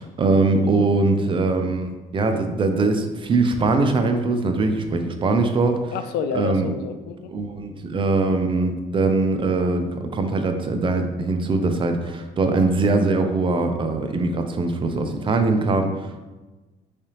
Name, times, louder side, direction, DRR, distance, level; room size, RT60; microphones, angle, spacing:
voice 1, 0.0-5.9 6.3-6.7 7.3-16.3, right 3 dB, 30° right, 6 dB, 0.4 m, -22 dB
voice 2, 5.9-7.3, left 6 dB, 80° left, 9 dB, 0.4 m, -29 dB
3.6 x 3.3 x 2.8 m, 1.2 s
cardioid pair, 110°, 17 cm